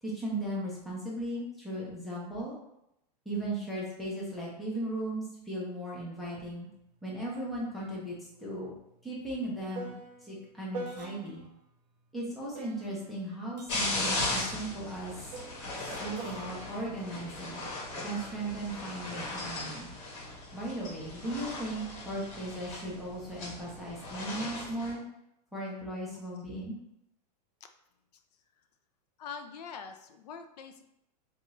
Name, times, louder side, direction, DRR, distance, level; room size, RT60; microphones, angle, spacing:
voice 1, 0.0-2.6 3.3-6.7 7.0-8.7 9.0-9.9 10.2-11.4 12.1-15.3 15.8-17.6 18.0-19.9 20.5-25.0 25.5-26.7, right 1 dB, ahead, -6 dB, 0.5 m, -37 dB
sound 1, 6.4-6.5 6.9-11.6 12.5-18.1 18.9-19.4, right 3 dB, 85° right, 0.6 m, -46 dB
sound 2, 13.7-24.9, left 2 dB, 45° left, 1.2 m, -37 dB
voice 2, 29.2-30.8, left 5 dB, 70° left, 7 dB, 0.5 m, -44 dB
3.7 x 2.4 x 3.0 m, 0.81 s
supercardioid pair, 170°, 21 cm